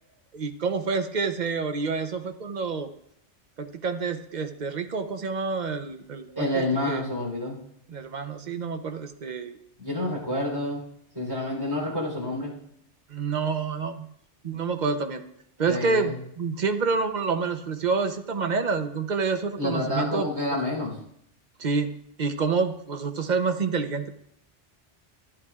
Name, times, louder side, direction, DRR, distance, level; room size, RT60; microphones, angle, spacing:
voice 1, 0.3-2.9 3.6-7.0 7.9-9.6 13.1-14.1 14.4-15.2 15.6-20.3 21.6-21.9 22.2-24.1, right 4 dB, 45° right, 7 dB, 0.8 m, -28 dB
voice 2, 6.3-7.6 9.8-10.8 11.1-12.5 15.7-16.1 19.6-20.9, left 1 dB, 20° right, -3 dB, 3.5 m, -28 dB
14.0 x 11.0 x 2.4 m, 0.73 s
omnidirectional pair, 1.2 m